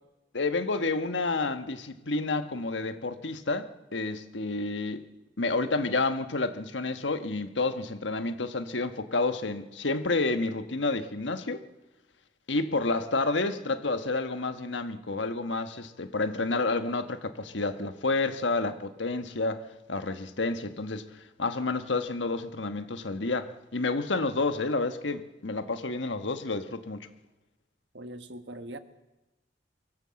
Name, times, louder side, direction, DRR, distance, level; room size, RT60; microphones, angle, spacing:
voice 1, 0.3-5.0 5.4-11.6 12.5-19.6 19.9-27.1, left 3 dB, 90° left, 9 dB, 1.4 m, -30 dB
voice 2, 27.9-28.8, right 1 dB, 70° right, 9 dB, 1.4 m, -41 dB
24.0 x 16.0 x 7.6 m, 1.0 s
head